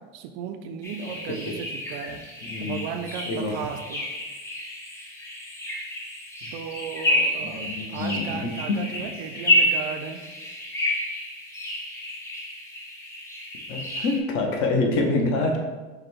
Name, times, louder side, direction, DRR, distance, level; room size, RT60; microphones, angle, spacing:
voice 1, 0.0-2.2 2.6-4.1 6.5-10.2, right 7 dB, 55° right, 7 dB, 0.4 m, -35 dB
sound 1, 0.8-14.2, left 1 dB, 10° left, 0.4 m, -29 dB
voice 2, 2.4-2.8 3.3-3.5 7.4-8.4 13.7-15.6, left 2 dB, 45° left, 2 dB, 0.8 m, -26 dB
5.0 x 2.2 x 4.3 m, 1.2 s
cardioid pair, 155°, 32 cm